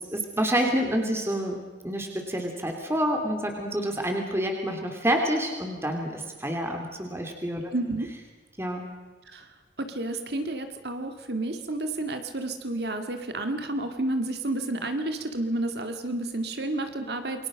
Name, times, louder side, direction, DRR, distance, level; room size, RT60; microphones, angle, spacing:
voice 1, 0.1-1.6 1.8-7.7 8.6-8.8, equal, 15° right, 3 dB, 3.0 m, -28 dB
voice 2, 7.7-8.1 9.3-9.5 9.8-17.5, right 2 dB, 60° right, 7 dB, 2.0 m, -30 dB
28.5 x 22.5 x 6.4 m, 1.3 s
head